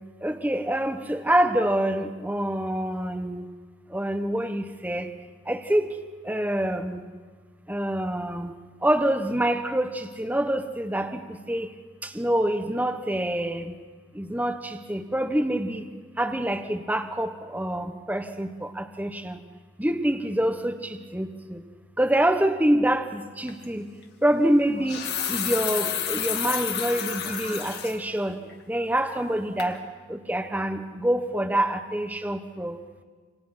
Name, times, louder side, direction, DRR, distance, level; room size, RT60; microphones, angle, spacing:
voice 1, 0.2-3.5 3.9-5.1 5.5-5.9 6.2-7.0 7.7-8.5 8.8-11.7 12.1-13.7 14.2-15.8 16.2-19.4 19.8-21.6 22.0-23.8 24.2-25.0 25.3-28.4 28.7-29.8 30.1-32.8, right 1 dB, 10° right, 8 dB, 1.2 m, -26 dB
sound 1, 23.5-23.6 24.6-28.0 28.4-28.5 29.0-29.3 29.6-29.7, left 8 dB, 60° left, 2.4 m, -30 dB
28.0 x 27.5 x 5.9 m, 1.5 s
head